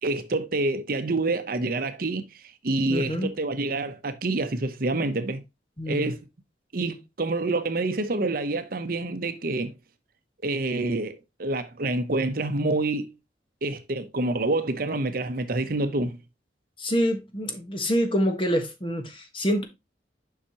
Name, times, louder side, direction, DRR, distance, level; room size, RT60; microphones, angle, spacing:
voice 1, 0.0-5.4 5.9-6.2 6.7-9.7 10.4-13.1 13.6-16.2, right 2 dB, 55° right, 0.8 m, -27 dB
voice 2, 2.9-3.3 5.8-6.1 16.8-19.6, equal, 30° left, 1.4 m, -26 dB
7.2 x 5.6 x 2.9 m
head